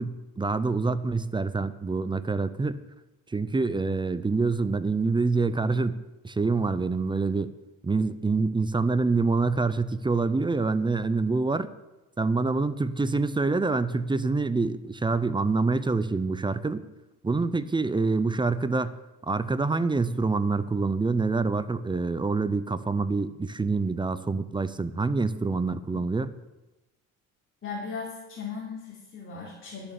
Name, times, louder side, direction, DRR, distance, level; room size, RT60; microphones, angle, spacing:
voice 1, 0.0-2.8 3.3-7.5 7.8-11.7 12.2-16.8 17.2-18.9 19.2-26.3, right 3 dB, 15° right, 14 dB, 0.5 m, -26 dB
voice 2, 27.6-29.9, left 5 dB, 35° left, -5 dB, 3.1 m, -37 dB
12.0 x 7.2 x 6.8 m, 1.0 s
cardioid pair, 110°, 34 cm